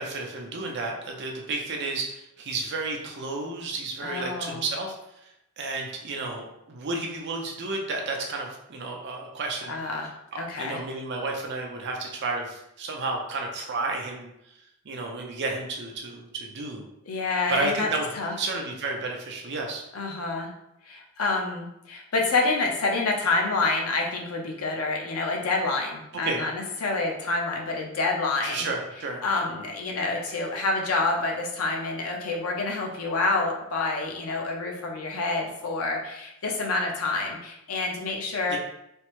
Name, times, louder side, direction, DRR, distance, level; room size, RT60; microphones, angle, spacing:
voice 1, 0.0-4.9 5.6-9.7 10.3-14.3 14.8-16.8 17.5-18.1 18.4-19.8 26.2-26.4 28.4-29.2 38.5-38.6, right 3 dB, 55° right, 1 dB, 0.5 m, -32 dB
voice 2, 4.0-4.6 9.7-10.1 10.4-10.8 17.1-17.9 18.1-18.3 19.9-20.5 20.8-28.7 29.2-38.6, left 3 dB, 85° left, 0 dB, 0.6 m, -28 dB
3.3 x 2.0 x 3.0 m, 0.82 s
head